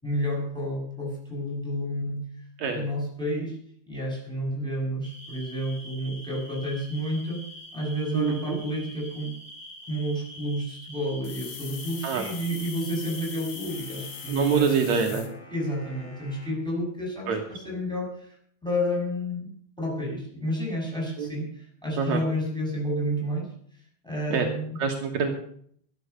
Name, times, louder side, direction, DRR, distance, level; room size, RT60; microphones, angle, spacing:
voice 1, 0.0-2.2 2.7-3.6 3.9-7.4 7.7-9.4 9.9-15.2 15.5-18.3 18.6-23.5 24.0-24.8, equal, ahead, -2 dB, 5.9 m, -30 dB
sound 1, 5.0-14.6, left 1 dB, 20° left, 8.1 m, -45 dB
voice 2, 8.1-8.6 12.0-12.3 14.3-15.3 17.3-17.4 21.2-21.3 22.0-22.2 24.3-24.4 24.8-25.3, right 6 dB, 80° right, 3 dB, 1.6 m, -25 dB
sound 2, 11.2-15.3, left 9 dB, 70° left, 3.7 m, -41 dB
sound 3, 13.7-16.7, left 2 dB, 90° left, 6.3 m, -51 dB
12.5 x 12.0 x 6.7 m, 0.62 s
omnidirectional pair, 5.3 m